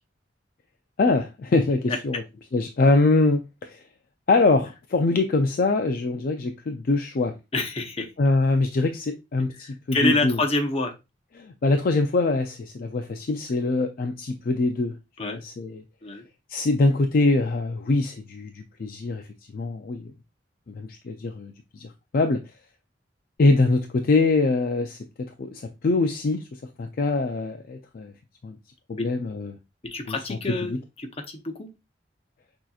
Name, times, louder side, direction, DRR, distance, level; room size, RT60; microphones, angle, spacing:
voice 1, 1.0-2.2 2.5-3.8 4.3-7.3 8.2-10.4 11.4-14.9 15.2-15.8 16.5-19.2 19.5-20.1 20.7-21.9 22.1-22.4 23.4-25.0 25.4-26.4 26.8-28.1 28.4-28.6 28.9-29.6 30.1-30.8, left 3 dB, 55° left, 0.4 m, -23 dB
voice 2, 7.5-8.1 9.6-10.9 15.2-15.4 16.0-16.2 29.0-29.1 29.9-31.7, left 2 dB, 35° left, 0.8 m, -27 dB
6.3 x 2.9 x 2.4 m
head